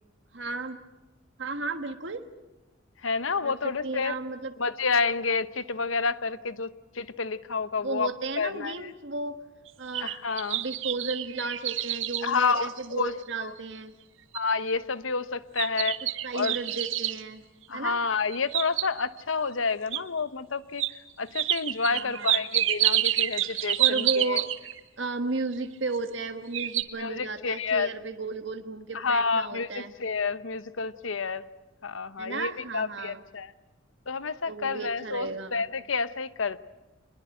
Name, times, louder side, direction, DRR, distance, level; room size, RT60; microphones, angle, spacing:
voice 1, 0.3-0.8 1.4-2.2 3.4-3.5 3.8-4.5 7.8-9.4 9.8-10.1 10.5-13.9 16.2-17.4 17.7-18.0 21.9-22.4 23.8-24.5 25.0-29.9 32.2-33.2 34.5-35.6, right 3 dB, 65° right, 7 dB, 1.5 m, -34 dB
voice 2, 3.0-4.1 4.6-8.1 8.4-8.9 10.0-10.6 12.2-13.5 14.3-16.6 17.7-20.8 21.2-24.4 27.0-27.9 28.9-31.5 31.8-33.5 34.1-36.6, left 4 dB, 85° left, 15 dB, 0.9 m, -29 dB
sound 1, 9.7-13.2 13.7-13.8 14.3-14.7 15.6-17.2 18.2-19.2 19.9-20.0 20.8-20.9 21.3-24.8 25.8-26.3 26.5-26.8, right 13 dB, 80° right, 1.4 m, -28 dB
25.0 x 21.0 x 9.0 m, 1.1 s
head